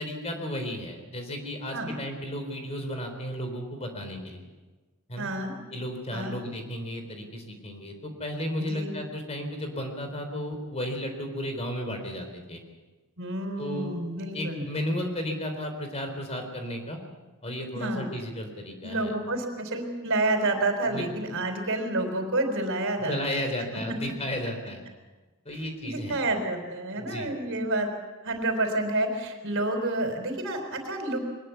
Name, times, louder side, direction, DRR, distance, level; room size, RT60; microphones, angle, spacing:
voice 1, 0.0-4.5 5.1-5.3 5.7-12.6 13.6-14.0 14.3-17.0 17.4-19.1 20.9-21.1 23.1-24.8 25.5-26.2 27.0-27.3, equal, 30° left, 5 dB, 4.0 m, -34 dB
voice 2, 5.2-5.5 6.1-6.3 8.6-8.9 13.2-14.6 17.7-18.0 18.8-23.1 23.9-24.0 25.8-27.9 28.2-31.2, right 2 dB, 65° right, 5 dB, 4.2 m, -29 dB
22.5 x 20.0 x 7.1 m, 1.2 s
head